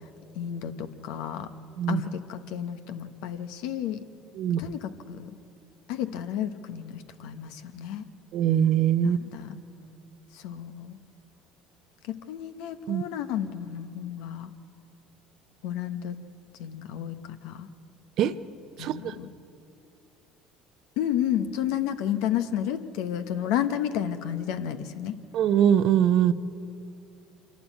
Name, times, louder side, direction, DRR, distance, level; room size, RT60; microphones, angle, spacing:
voice 1, 0.4-1.5 1.9-4.0 4.6-5.3 5.9-8.0 9.0-9.6 10.4-11.0 12.1-14.5 15.6-16.2 16.6-17.7 18.8-19.3 21.0-25.2, left 10 dB, 75° left, 10 dB, 1.0 m, -31 dB
voice 2, 8.3-9.2 12.9-13.1 18.2-18.3 18.8-19.1 25.3-26.3, right 9 dB, 60° right, 13 dB, 0.7 m, -22 dB
25.5 x 11.5 x 9.3 m, 2.6 s
supercardioid pair, 85°, 0 cm